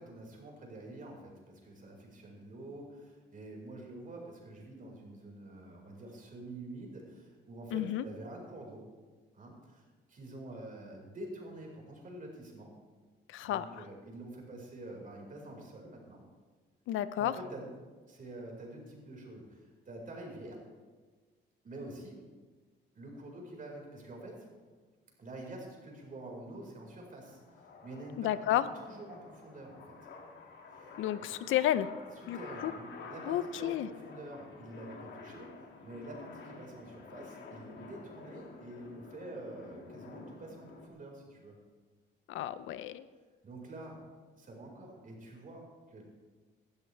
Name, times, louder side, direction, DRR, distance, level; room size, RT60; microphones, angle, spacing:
voice 1, 0.0-8.8 9.3-9.8 10.1-12.7 13.4-16.2 17.2-17.7 18.1-20.6 21.6-22.3 22.9-24.5 25.2-30.0 30.7-30.9 31.2-31.3 32.1-41.6 43.4-44.0 44.4-46.0, right 1 dB, 45° right, 0 dB, 4.8 m, -47 dB
voice 2, 7.7-8.0 13.3-13.8 16.9-17.3 28.2-28.6 31.0-31.9 32.3-32.4 32.6-32.7 33.3-33.9 42.3-43.0, left 12 dB, 80° left, 14 dB, 0.6 m, -31 dB
sound 1, 25.8-40.9, left 4 dB, 65° left, 2.2 m, -50 dB
18.0 x 12.5 x 3.4 m, 1.4 s
cardioid pair, 90°, 20 cm